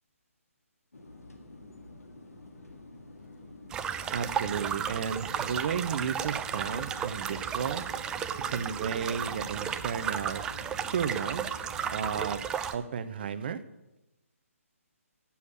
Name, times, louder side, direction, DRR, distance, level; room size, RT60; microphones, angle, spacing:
sound 1, 0.9-12.3, left 2 dB, 90° left, 1.8 m, -49 dB
sound 2, 3.7-12.7, right 8 dB, 10° right, 0.3 m, -34 dB
voice 1, 4.1-7.9 8.5-10.5 10.9-11.4 11.9-12.4 12.7-13.6, right 7 dB, 45° right, 13 dB, 0.7 m, -33 dB
7.9 x 7.1 x 8.5 m, 0.98 s
hypercardioid pair, 150°, 8 cm